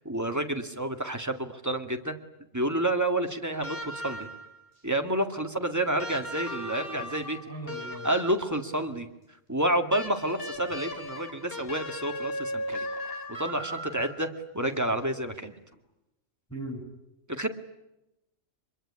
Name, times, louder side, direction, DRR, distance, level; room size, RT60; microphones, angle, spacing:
voice 1, 0.0-2.2 2.5-4.3 4.8-7.4 8.0-9.1 9.5-12.9 13.4-14.3 14.5-15.6 17.3-17.5, right 1 dB, 15° right, 5 dB, 2.2 m, -29 dB
sound 1, 3.6-4.6 6.0-8.6 9.9-14.4 15.7-15.8, left 1 dB, 50° left, 4.6 m, -37 dB
voice 2, 7.5-8.1 16.5-16.8, right 2 dB, 10° left, 2 dB, 6.8 m, -38 dB
25.5 x 22.5 x 10.0 m, 0.91 s
omnidirectional pair, 1.3 m